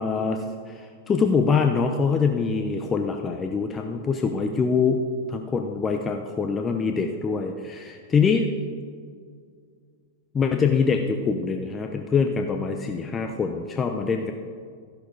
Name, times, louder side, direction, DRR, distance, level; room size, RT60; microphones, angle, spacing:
voice 1, 0.0-5.0 5.3-8.5 10.3-14.3, left 5 dB, 20° left, 4 dB, 0.9 m, -24 dB
13.0 x 12.0 x 5.3 m, 2.1 s
hypercardioid pair, 100°, 0 cm